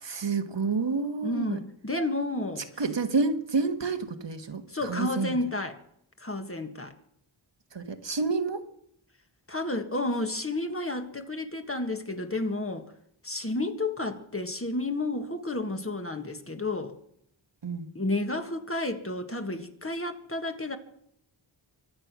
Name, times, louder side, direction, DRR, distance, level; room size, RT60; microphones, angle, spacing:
voice 1, 0.0-1.6 2.8-5.4 7.7-8.7 17.6-17.9, right 4 dB, 65° right, 1.4 m, -29 dB
voice 2, 1.2-2.7 4.7-5.8 6.2-6.9 9.5-12.9 13.2-17.0 18.0-20.8, left 2 dB, 30° left, 1.7 m, -31 dB
25.0 x 8.8 x 6.1 m
wide cardioid pair, 85°, 48 cm